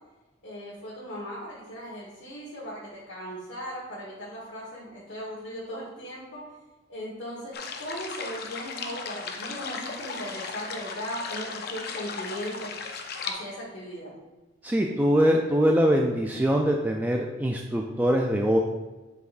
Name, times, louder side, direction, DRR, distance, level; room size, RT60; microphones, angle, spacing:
voice 1, 0.4-6.4 6.9-12.7 13.2-14.1, equal, 75° left, -7 dB, 1.4 m, -38 dB
sound 1, 7.5-13.3, left 5 dB, 50° left, 0.6 m, -36 dB
voice 2, 14.6-18.6, equal, 10° right, 1 dB, 0.3 m, -23 dB
8.0 x 5.0 x 2.5 m, 1.2 s
head